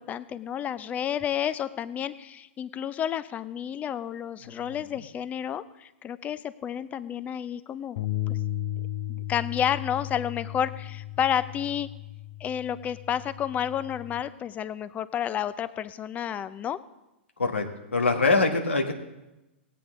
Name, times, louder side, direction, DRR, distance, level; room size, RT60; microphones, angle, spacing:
voice 1, 0.0-8.0 8.3-8.4 9.1-11.9 12.4-16.8, left 9 dB, 25° left, 15 dB, 0.6 m, -31 dB
Bass guitar, 8.0-14.2, left 15 dB, 55° left, 1.1 m, -35 dB
voice 2, 17.9-18.9, left 3 dB, 90° left, 2 dB, 1.7 m, -23 dB
18.0 x 8.7 x 3.7 m, 0.97 s
hypercardioid pair, 110°, 6 cm